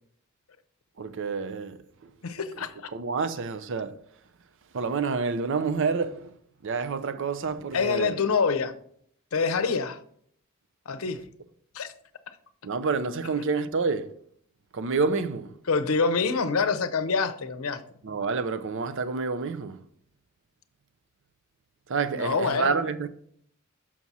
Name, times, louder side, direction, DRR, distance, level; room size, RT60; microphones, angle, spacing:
voice 1, 1.0-2.1 2.9-4.0 4.7-6.4 6.6-8.2 12.6-14.1 14.7-15.6 18.0-19.8 21.9-23.1, right 4 dB, 65° right, 0.6 m, -28 dB
voice 2, 2.2-2.9 7.7-8.7 9.3-10.0 10.9-11.2 11.7-11.9 15.7-17.8 22.1-22.8, left 5 dB, 75° left, 0.6 m, -26 dB
6.0 x 6.0 x 4.1 m
head